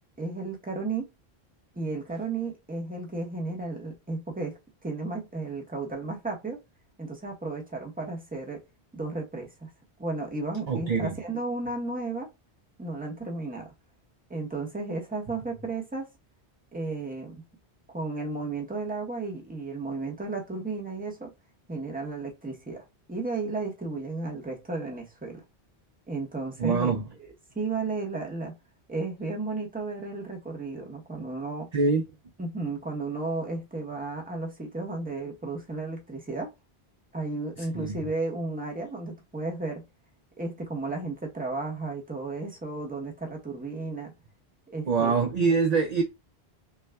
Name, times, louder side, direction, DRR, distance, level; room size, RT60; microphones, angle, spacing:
voice 1, 0.2-1.1 1.8-6.6 7.0-8.6 8.9-9.7 10.0-12.3 12.8-13.7 14.3-16.1 16.7-17.4 17.9-21.3 21.7-25.4 26.1-26.9 27.5-28.5 28.9-31.7 32.4-36.5 37.1-39.8 40.4-44.1 44.7-45.1, right 3 dB, 10° right, 0.8 m, -33 dB
voice 2, 10.7-11.1 26.6-27.0 31.7-32.0 37.6-38.0 44.9-46.0, right 5 dB, 55° right, 0.5 m, -24 dB
5.6 x 2.2 x 2.2 m
omnidirectional pair, 1.1 m